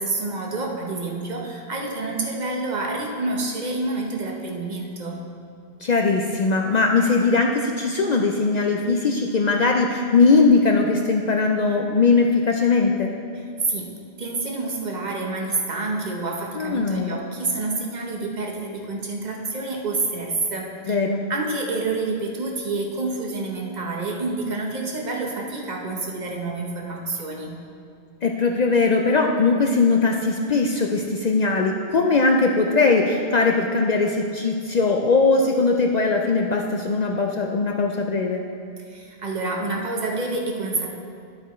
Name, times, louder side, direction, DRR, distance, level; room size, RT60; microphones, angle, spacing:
voice 1, 0.0-5.2 13.7-13.9 14.2-20.9 21.3-27.5 38.9-40.9, right 3 dB, 45° right, 0 dB, 1.0 m, -28 dB
voice 2, 5.8-13.1 16.6-17.2 20.8-21.2 28.2-38.4, left 4 dB, 55° left, 2 dB, 0.5 m, -20 dB
10.5 x 7.9 x 3.1 m, 2.3 s
omnidirectional pair, 1.1 m